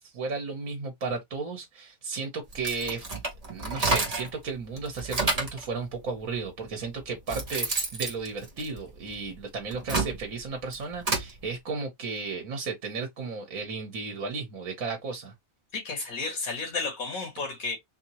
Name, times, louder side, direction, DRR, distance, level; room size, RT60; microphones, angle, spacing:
voice 1, 0.0-3.0 3.5-15.3, right 4 dB, 75° right, 1.5 m, -34 dB
sound 1, 2.5-4.4 4.8-5.6 6.5-6.6 7.0-9.2 9.6-11.3, right 3 dB, 30° right, 1.3 m, -30 dB
voice 2, 15.7-17.8, left 4 dB, 85° left, 1.9 m, -32 dB
4.4 x 2.9 x 2.9 m
omnidirectional pair, 1.4 m